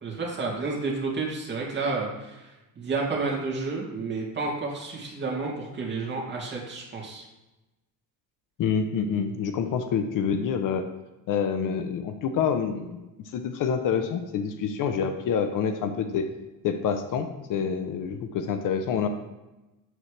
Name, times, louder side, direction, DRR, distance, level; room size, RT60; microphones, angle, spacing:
voice 1, 0.0-7.2, right 3 dB, 30° right, -3 dB, 2.3 m, -31 dB
voice 2, 8.6-10.9 11.3-16.3 16.6-19.1, left 7 dB, 55° left, 8 dB, 0.7 m, -27 dB
8.0 x 7.1 x 3.3 m, 1.0 s
cardioid pair, 140°, 38 cm